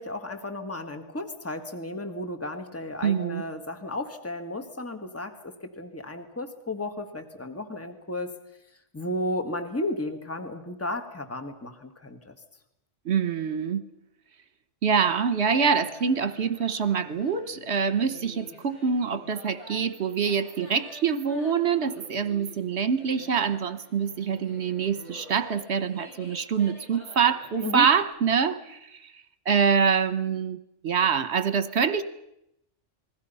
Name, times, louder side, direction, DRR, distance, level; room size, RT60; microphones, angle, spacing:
voice 1, 0.0-8.3 8.9-12.3 27.6-27.9, left 1 dB, 10° left, 6 dB, 1.7 m, -34 dB
voice 2, 3.0-3.4 13.0-13.8 14.8-30.6 30.8-32.0, right 6 dB, 60° right, 13 dB, 1.4 m, -25 dB
sound 1, 15.4-28.1, equal, 85° left, 7.8 m, -49 dB
29.0 x 21.0 x 5.6 m, 0.80 s
omnidirectional pair, 1.3 m